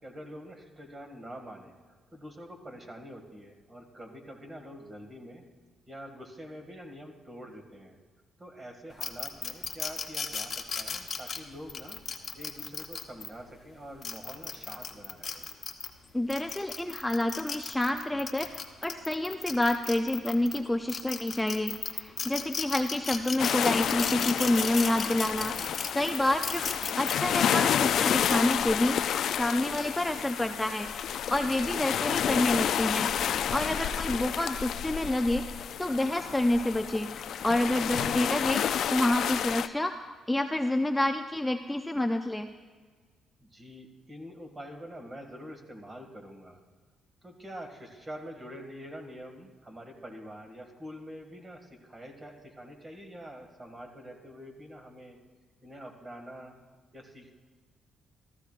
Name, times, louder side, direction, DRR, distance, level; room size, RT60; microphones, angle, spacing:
voice 1, 0.0-1.8 2.1-5.4 5.9-8.0 8.4-12.0 12.3-15.4 26.2-26.6 33.9-34.2 43.4-46.6 47.2-55.2 55.6-56.5 56.9-57.3, equal, 25° right, 3 dB, 1.9 m, -45 dB
sound 1, 9.0-13.3 13.9-15.9 16.3-20.6 20.9-27.1, left 5 dB, 40° left, 1.0 m, -35 dB
voice 2, 16.1-26.6 27.0-33.1 33.5-42.5, left 1 dB, 10° left, 6 dB, 0.5 m, -28 dB
sound 2, 23.4-39.7, left 9 dB, 70° left, 0.4 m, -30 dB
15.0 x 13.5 x 2.5 m, 1.5 s
cardioid pair, 90°, 0 cm